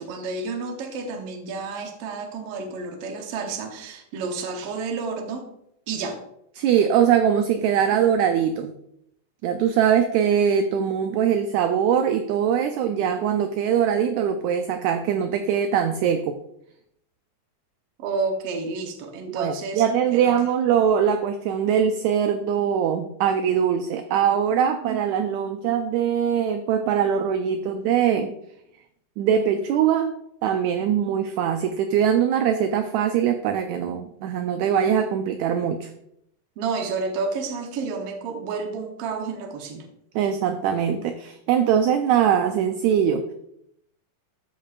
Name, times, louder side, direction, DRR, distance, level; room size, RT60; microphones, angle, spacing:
voice 1, 0.0-5.4 5.9-6.2 18.0-20.3 36.6-39.9, right 4 dB, 65° right, 4 dB, 1.7 m, -30 dB
voice 2, 6.6-8.7 9.4-16.4 19.3-28.3 29.2-30.2 30.4-35.9 40.2-43.2, right 8 dB, 80° right, 7 dB, 1.7 m, -22 dB
13.5 x 5.3 x 2.5 m, 0.76 s
omnidirectional pair, 3.6 m